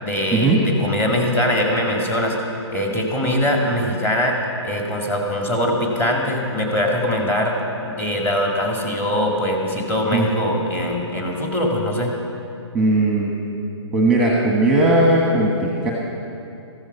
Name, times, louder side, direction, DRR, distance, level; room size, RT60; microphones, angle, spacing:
voice 1, 0.0-2.4 2.7-4.4 4.6-7.6 7.8-12.1, left 1 dB, 15° left, 0 dB, 1.9 m, -22 dB
voice 2, 12.7-13.3 13.9-15.9, right 2 dB, 5° right, -2 dB, 1.3 m, -17 dB
14.5 x 14.0 x 5.6 m, 2.7 s
hypercardioid pair, 150°, 15 cm